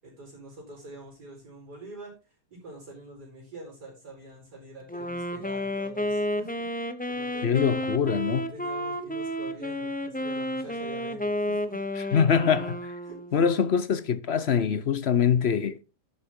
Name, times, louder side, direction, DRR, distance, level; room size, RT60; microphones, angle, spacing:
voice 1, 0.0-6.7 7.1-7.9 8.5-11.8 13.0-13.4, right 2 dB, 75° right, 5.4 m, -46 dB
Wind instrument woodwind instrument, 4.9-13.5, equal, 10° left, 0.5 m, -31 dB
voice 2, 7.4-8.5 12.1-12.9 13.3-15.8, left 7 dB, 50° left, 0.8 m, -24 dB
11.5 x 8.5 x 3.7 m
omnidirectional pair, 1.8 m